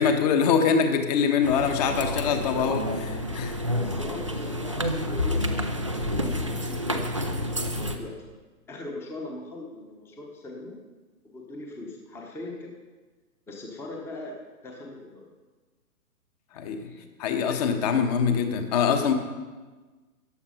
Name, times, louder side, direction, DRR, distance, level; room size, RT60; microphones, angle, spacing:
voice 1, 0.0-3.6 16.6-16.8 17.2-19.1, left 6 dB, 25° left, 7 dB, 1.1 m, -24 dB
sound 1, 1.4-8.0, left 1 dB, 25° right, 0.4 m, -29 dB
voice 2, 3.7-8.1 8.7-10.8 11.2-12.7 13.5-14.4 14.6-15.3 16.5-17.2 17.5-17.6, left 2 dB, 5° left, 0 dB, 0.9 m, -40 dB
14.5 x 10.5 x 5.7 m, 1.3 s
hypercardioid pair, 140°, 47 cm